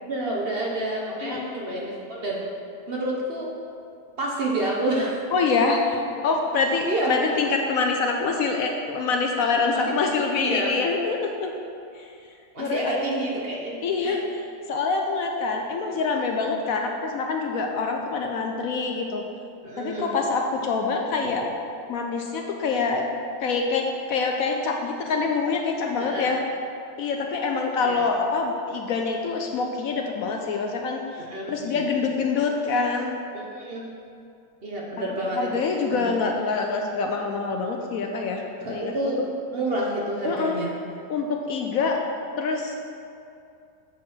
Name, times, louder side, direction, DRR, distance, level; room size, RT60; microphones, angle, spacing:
voice 1, 0.0-2.4 2.9-3.5 4.2-5.1 6.1-6.2 6.8-7.2 9.7-9.9 10.4-10.7 12.5-13.8 14.0-14.2 19.6-20.1 26.0-26.3 27.8-28.0 31.2-31.9 33.3-33.9 34.6-36.0 38.6-39.2 39.5-40.7, right 1 dB, 45° right, -3 dB, 0.9 m, -29 dB
voice 2, 1.2-1.5 5.3-5.8 6.2-11.5 12.0-12.1 12.6-12.8 13.8-14.4 14.7-19.2 19.8-21.4 21.9-23.1 23.4-26.4 27.0-31.0 31.5-33.1 35.0-39.3 40.2-40.6 41.1-42.0 42.4-42.8, left 4 dB, 70° left, 2 dB, 0.9 m, -25 dB
7.5 x 4.6 x 5.6 m, 2.6 s
omnidirectional pair, 1.7 m